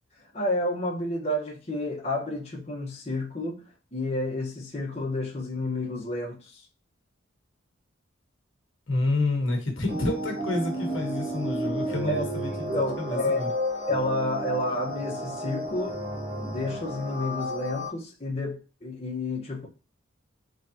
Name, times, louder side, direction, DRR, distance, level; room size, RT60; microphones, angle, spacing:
voice 1, 0.3-3.6 3.9-6.7 12.1-12.3 12.7-13.5 13.9-16.0 16.3-19.7, left 1 dB, 30° left, 1.1 m, -30 dB
voice 2, 8.9-13.5, left 2 dB, 75° left, 1.2 m, -29 dB
sound 1, 9.9-17.9, equal, 30° right, 1.0 m, -32 dB
3.9 x 3.3 x 2.7 m
head